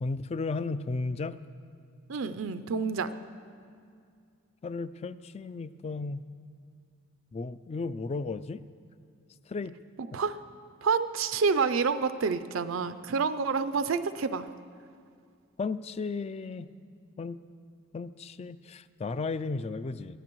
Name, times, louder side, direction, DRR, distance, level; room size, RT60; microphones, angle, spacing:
voice 1, 0.0-1.4 4.6-6.3 7.3-8.6 9.5-9.7 15.6-16.7 17.2-17.4 17.9-20.2, left 3 dB, 30° left, 14 dB, 0.3 m, -34 dB
voice 2, 2.1-3.1 10.0-10.4 10.8-14.5, right 5 dB, 75° right, 12 dB, 0.5 m, -28 dB
23.0 x 15.0 x 3.1 m, 2.2 s
head